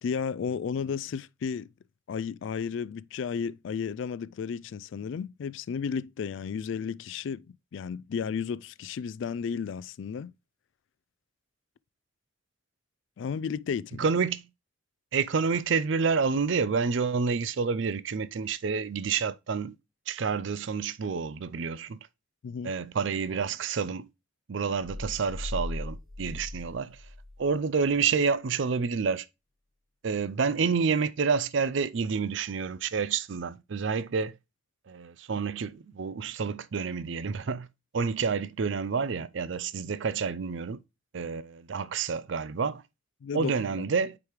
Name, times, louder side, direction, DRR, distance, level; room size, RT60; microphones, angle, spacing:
voice 1, 0.0-1.7 2.1-7.5 7.7-10.3 13.2-14.1 22.4-22.7 43.2-43.8, left 6 dB, 60° left, 0.3 m, -33 dB
voice 2, 14.0-14.4 15.1-19.7 20.1-22.0 22.6-24.1 24.5-27.0 27.4-29.3 30.0-34.4 34.9-37.7 37.9-40.8 41.1-42.8 43.3-44.2, right 5 dB, 60° right, 0.5 m, -29 dB
sound 1, 24.8-27.5, left 1 dB, ahead, 2.5 m, -38 dB
8.3 x 4.8 x 3.1 m
head